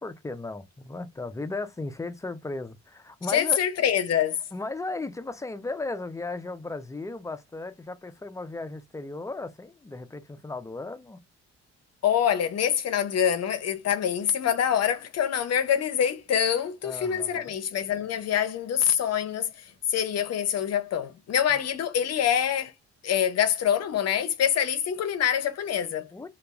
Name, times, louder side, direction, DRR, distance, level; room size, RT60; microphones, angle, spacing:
voice 1, 0.0-3.6 4.5-11.2 16.8-17.5 26.1-26.3, left 3 dB, 10° left, 0.3 m, -36 dB
voice 2, 3.3-4.4 12.0-22.7 23.0-26.1, left 9 dB, 55° left, 0.6 m, -25 dB
2.3 x 2.2 x 2.9 m
cardioid pair, 90°, 30 cm